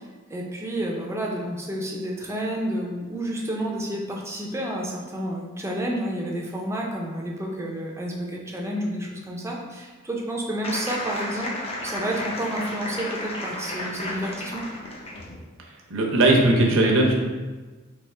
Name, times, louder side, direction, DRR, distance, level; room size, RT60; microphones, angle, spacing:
voice 1, 0.3-11.5 11.8-14.6, right 1 dB, 15° right, -1 dB, 0.6 m, -30 dB
sound 1, 10.6-15.3, left 1 dB, 30° left, 0.6 m, -33 dB
voice 2, 15.9-17.1, right 2 dB, 70° right, -1 dB, 0.8 m, -18 dB
3.5 x 3.0 x 4.2 m, 1.3 s
head